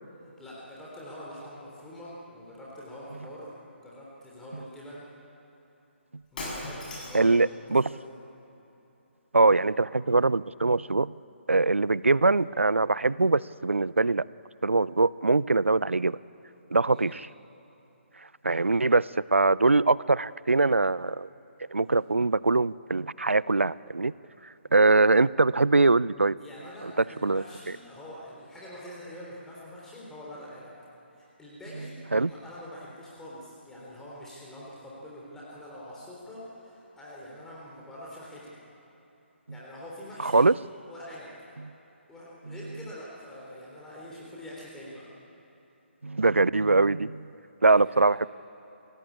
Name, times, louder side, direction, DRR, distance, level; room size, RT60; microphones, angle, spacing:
voice 1, 0.4-5.1 6.3-8.2 9.5-9.6 16.8-17.1 26.4-30.7 31.1-31.9 32.2-38.5 39.5-40.4 40.9-41.3 42.1-45.1 47.7-48.0, left 1 dB, 5° left, -6 dB, 3.6 m, -45 dB
Shatter, 6.2-7.3, left 2 dB, 40° left, 7.7 m, -37 dB
voice 2, 7.1-7.9 9.3-11.2 11.5-14.2 14.6-16.2 16.7-17.3 18.4-21.3 21.7-24.1 24.7-26.4 26.8-26.9 27.2-27.4 32.1-32.3 40.2-40.5 42.5-42.6 46.0-47.3 47.6-48.3, right 3 dB, 85° right, 21 dB, 0.5 m, -22 dB
26.5 x 17.0 x 8.6 m, 3.0 s
figure-of-eight pair, 140°, 7 cm